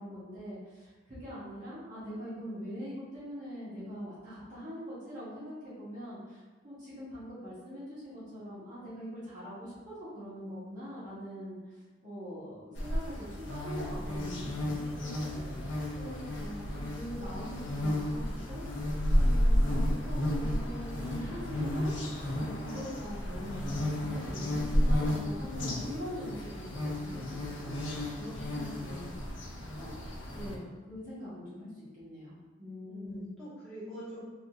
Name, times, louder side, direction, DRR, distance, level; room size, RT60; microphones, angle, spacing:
voice 1, 0.0-15.3 15.9-18.6 19.2-21.9 22.3-29.2 29.7-33.3, equal, 40° right, -11 dB, 1.3 m, -43 dB
sound 1, 12.7-30.6, left 1 dB, 65° left, 0.6 m, -32 dB
voice 2, 15.3-15.8 32.9-34.2, equal, 5° left, -14 dB, 1.4 m, -45 dB
3.6 x 2.7 x 2.4 m, 1.3 s
head